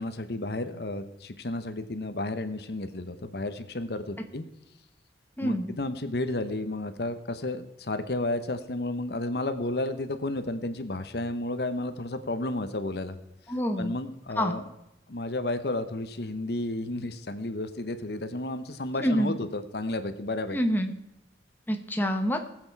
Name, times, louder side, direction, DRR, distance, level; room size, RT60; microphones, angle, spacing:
voice 1, 0.0-4.5 5.4-13.2 13.8-14.6 15.1-20.6, left 2 dB, 60° left, 10 dB, 0.9 m, -32 dB
voice 2, 5.4-5.7 13.5-13.9 14.4-14.5 19.0-19.3 20.5-20.9 21.7-22.4, equal, 10° left, 4 dB, 1.0 m, -26 dB
19.5 x 7.9 x 4.6 m, 0.89 s
head